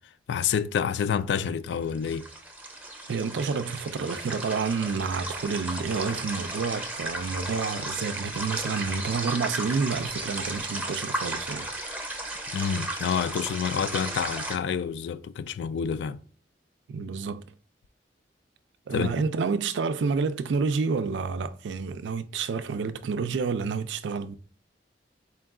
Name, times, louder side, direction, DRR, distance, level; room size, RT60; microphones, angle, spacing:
voice 1, 0.3-2.3 12.5-16.2 18.9-19.2, left 7 dB, 70° left, 0.3 m, -28 dB
sound 1, 1.8-14.6, right 1 dB, 10° right, 0.6 m, -34 dB
voice 2, 3.1-11.7 16.9-17.4 18.9-24.4, right 5 dB, 85° right, 0.4 m, -29 dB
4.4 x 2.3 x 3.5 m
head